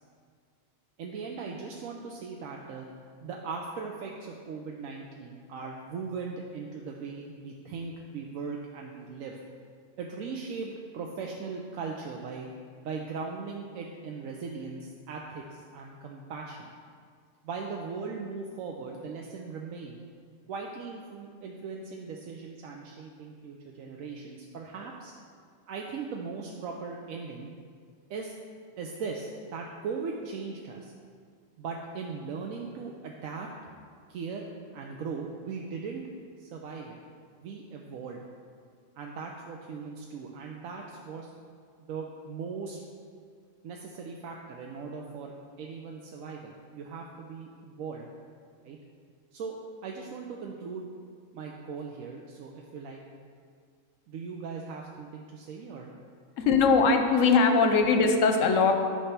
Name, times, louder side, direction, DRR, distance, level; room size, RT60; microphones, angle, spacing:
voice 1, 1.0-2.9 3.2-9.4 10.0-12.5 12.8-16.7 17.4-20.0 20.5-25.1 25.7-27.5 28.1-28.3 28.8-30.9 31.6-33.5 34.1-34.5 34.7-36.0 36.4-37.0 37.3-38.2 39.0-41.3 41.8-42.8 43.6-48.1 48.6-48.8 49.3-49.6 49.8-50.9 51.3-53.0 54.1-55.9, right 5 dB, 85° right, 0 dB, 1.0 m, -39 dB
voice 2, 56.4-58.7, left 4 dB, 70° left, 5 dB, 1.0 m, -21 dB
9.7 x 3.3 x 5.7 m, 2.1 s
omnidirectional pair, 1.4 m